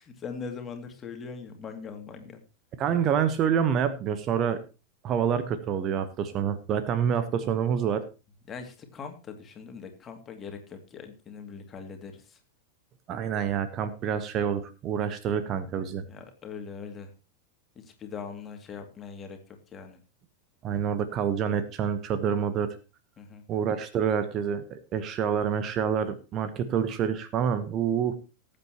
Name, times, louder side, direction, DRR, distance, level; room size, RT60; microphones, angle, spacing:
voice 1, 0.0-2.4 8.5-12.4 16.1-17.1 17.8-19.4 19.7-20.0 23.2-23.4, left 5 dB, 25° left, 5 dB, 2.5 m, -41 dB
voice 2, 2.8-4.6 5.0-8.0 13.1-16.0 20.6-22.8 23.5-28.2, right 8 dB, 35° right, 12 dB, 1.1 m, -27 dB
19.0 x 8.8 x 3.0 m, 0.31 s
figure-of-eight pair, 90°, 0 cm